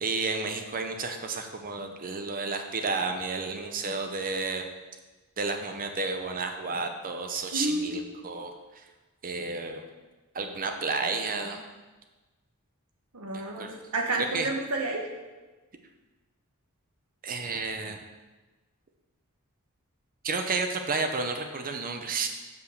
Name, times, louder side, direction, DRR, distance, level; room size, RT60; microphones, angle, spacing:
voice 1, 0.0-4.7 5.4-8.8 9.2-9.8 10.3-11.6 13.3-13.7 14.3-14.5 17.2-18.0 20.2-22.3, right 4 dB, 40° right, 5 dB, 0.7 m, -31 dB
voice 2, 7.5-8.0 13.1-15.0, right 2 dB, 75° right, 1 dB, 1.2 m, -30 dB
5.4 x 5.2 x 6.5 m, 1.2 s
head